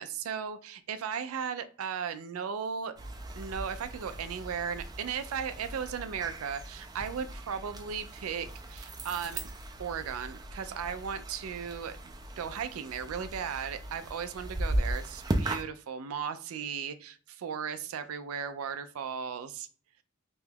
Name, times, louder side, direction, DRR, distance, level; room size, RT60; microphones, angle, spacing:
voice 1, 0.0-2.9 3.3-9.5 9.8-12.0 12.4-19.7, right 7 dB, 90° right, 11 dB, 0.4 m, -36 dB
sound 1, 3.0-15.6, right 1 dB, 20° right, 0.3 m, -38 dB
2.9 x 2.3 x 3.3 m, 0.41 s
head